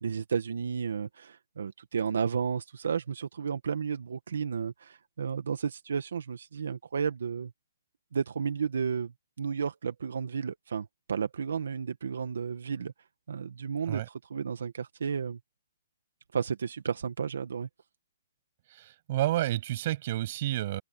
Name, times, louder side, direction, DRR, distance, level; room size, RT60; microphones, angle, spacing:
voice 1, 0.0-7.5 8.1-9.1 9.4-12.9 13.3-15.4 16.3-17.7, right 6 dB, 75° right, 1.5 m, -32 dB
voice 2, 18.7-20.8, right 14 dB, 40° right, 7.7 m, -30 dB
open air
hypercardioid pair, 165°, 0 cm